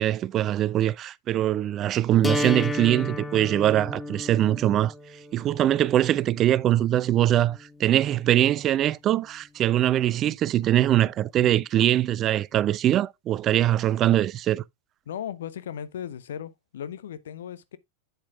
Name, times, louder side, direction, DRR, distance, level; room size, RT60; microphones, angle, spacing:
voice 1, 0.0-4.9 5.3-14.6, right 12 dB, 30° right, 0.4 m, -22 dB
sound 1, 2.2-8.2, left 1 dB, 5° left, 0.7 m, -33 dB
voice 2, 15.1-17.8, left 9 dB, 60° left, 0.7 m, -36 dB
8.1 x 7.3 x 2.5 m
figure-of-eight pair, 90°, 0 cm